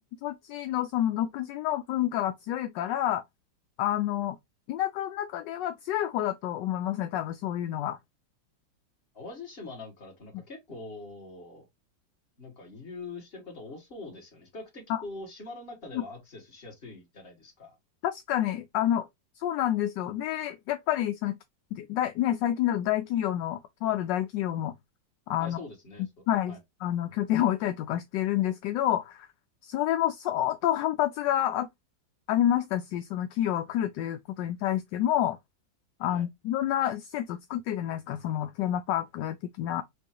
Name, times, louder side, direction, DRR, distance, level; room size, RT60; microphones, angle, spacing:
voice 1, 0.2-3.2 3.8-4.4 4.7-8.0 14.9-15.0 15.9-16.0 18.0-19.1 19.4-21.4 21.7-24.8 25.3-25.6 26.3-26.6 26.8-29.3 29.6-31.7 32.3-35.4 36.0-39.8, left 12 dB, 75° left, 1.2 m, -28 dB
voice 2, 9.1-11.7 12.4-17.8 25.4-26.1 26.5-26.6 36.1-36.2, left 3 dB, 30° left, 2.0 m, -43 dB
6.5 x 2.6 x 2.8 m
omnidirectional pair, 2.0 m